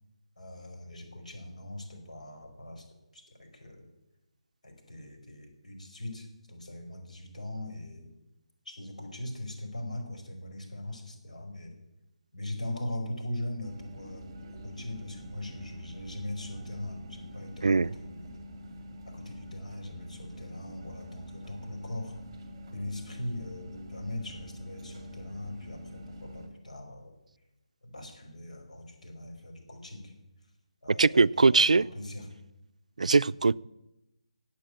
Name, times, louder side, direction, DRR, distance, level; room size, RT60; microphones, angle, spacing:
voice 1, 0.4-2.8 3.1-3.9 4.6-8.1 8.6-11.7 12.3-14.3 14.6-18.4 19.1-22.1 22.7-27.2 27.8-30.1 30.8-32.3, left 1 dB, 85° left, 3 dB, 4.9 m, -40 dB
sound 1, 13.6-26.5, equal, 20° right, 2.3 m, -45 dB
voice 2, 30.9-31.9 33.0-33.5, right 4 dB, 80° right, 17 dB, 0.4 m, -21 dB
15.0 x 8.5 x 8.5 m, 0.92 s
hypercardioid pair, 170°, 4 cm